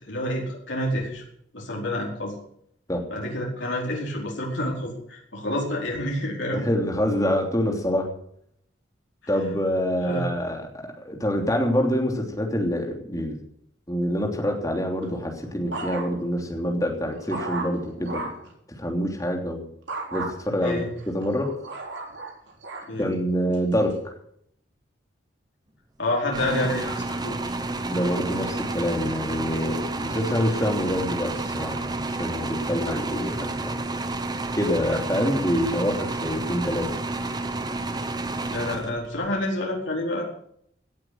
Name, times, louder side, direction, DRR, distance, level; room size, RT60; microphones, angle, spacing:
voice 1, 0.0-1.2 1.5-2.4 3.1-6.6 9.2-9.4 10.0-10.5 20.6-20.9 22.9-23.1 26.0-27.6 38.5-40.3, left 1 dB, 75° left, -2 dB, 4.8 m, -28 dB
voice 2, 6.5-8.1 9.3-13.4 13.9-18.2 18.8-19.6 20.1-20.8 21.1-21.5 23.0-23.9 27.9-33.7 34.5-36.9 37.1-37.3, equal, 15° left, 2 dB, 3.1 m, -26 dB
sound 1, 15.0-16.4 16.8-18.5 19.9-20.3 21.0-22.9 23.5-23.9, right 3 dB, 70° right, 3.8 m, -35 dB
sound 2, 26.3-39.3, right 2 dB, 20° right, 1.1 m, -30 dB
17.5 x 8.7 x 8.0 m, 0.68 s
head